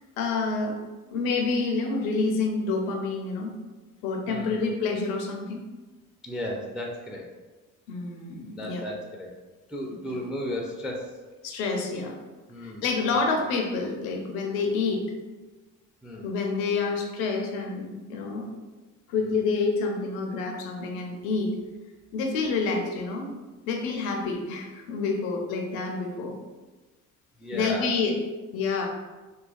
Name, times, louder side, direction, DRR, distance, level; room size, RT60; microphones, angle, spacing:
voice 1, 0.2-0.8 1.1-3.5 4.0-5.6 7.9-8.8 11.4-12.2 12.6-15.0 16.2-18.5 19.1-21.6 22.1-23.3 23.7-26.3 27.5-28.2 28.5-28.9, left 4 dB, 85° left, 2 dB, 0.5 m, -28 dB
voice 2, 4.3-4.7 6.2-7.3 8.5-9.3 9.7-11.1 12.5-12.8 16.0-16.3 19.2-19.4 27.4-27.9, equal, ahead, 0 dB, 0.3 m, -34 dB
2.7 x 2.3 x 2.3 m, 1.2 s
hypercardioid pair, 55°, 41 cm